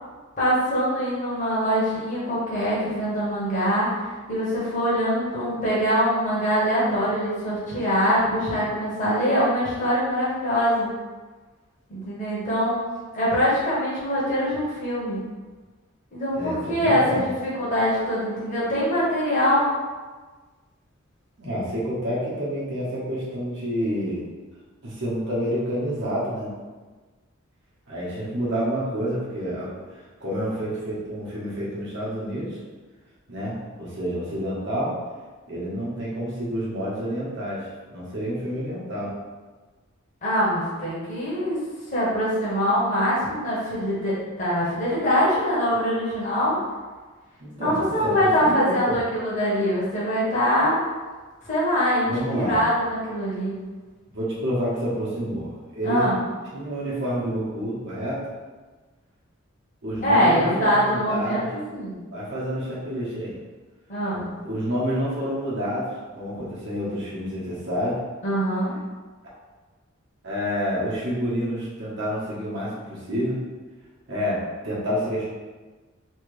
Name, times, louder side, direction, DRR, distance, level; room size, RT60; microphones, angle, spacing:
voice 1, 0.4-10.9 11.9-12.8 13.1-15.2 16.1-19.7 40.2-41.6 41.9-46.6 47.6-50.8 51.5-53.5 55.8-56.2 60.0-61.4 61.7-62.0 63.9-64.3 68.2-68.7, equal, 35° left, -8 dB, 1.0 m, -23 dB
voice 2, 16.3-17.2 21.4-24.2 24.8-26.5 27.9-32.6 33.3-35.0 35.5-39.1 47.4-49.0 52.0-52.6 54.1-56.1 56.5-58.3 59.8-61.5 62.1-63.4 64.4-68.0 70.2-73.4 74.1-75.3, equal, 60° right, -7 dB, 1.1 m, -28 dB
3.2 x 2.8 x 3.2 m, 1.3 s
head